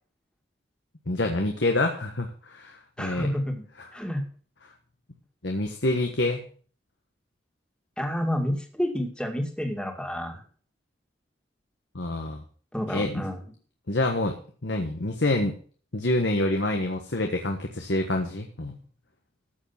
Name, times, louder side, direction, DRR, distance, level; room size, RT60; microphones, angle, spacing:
voice 1, 1.1-3.3 5.4-6.4 11.9-12.4 12.9-13.2 13.9-15.6 15.9-18.8, left 2 dB, 80° left, 3 dB, 1.4 m, -27 dB
voice 2, 3.0-3.6 3.9-4.2 8.0-10.4 12.7-13.4, equal, 5° left, 4 dB, 2.1 m, -29 dB
13.5 x 7.3 x 5.8 m, 0.43 s
head